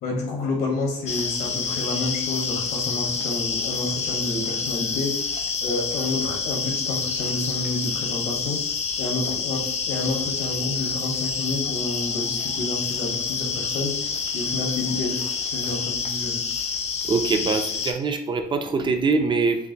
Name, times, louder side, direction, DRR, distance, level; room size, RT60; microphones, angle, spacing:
voice 1, 0.0-16.5, left 2 dB, 70° left, 0 dB, 1.4 m, -29 dB
sound 1, 1.1-17.9, left 5 dB, 40° left, 0.5 m, -28 dB
voice 2, 17.0-19.7, right 4 dB, 30° right, 6 dB, 0.5 m, -23 dB
5.9 x 2.1 x 2.8 m, 0.79 s
cardioid pair, 110°, 17 cm